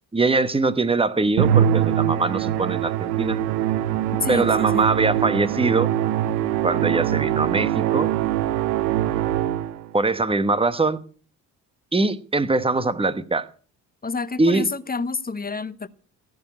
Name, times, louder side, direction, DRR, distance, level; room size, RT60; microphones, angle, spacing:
voice 1, 0.1-3.4 4.3-5.9 6.6-8.1 9.9-11.0 11.9-13.5 14.4-14.7, right 3 dB, 10° right, 1.2 m, -22 dB
Musical instrument, 1.4-9.9, right 11 dB, 80° right, 0.8 m, -23 dB
voice 2, 4.1-4.9 14.0-15.9, left 4 dB, 20° left, 0.9 m, -28 dB
17.0 x 7.4 x 8.5 m
hypercardioid pair, 50°, 49 cm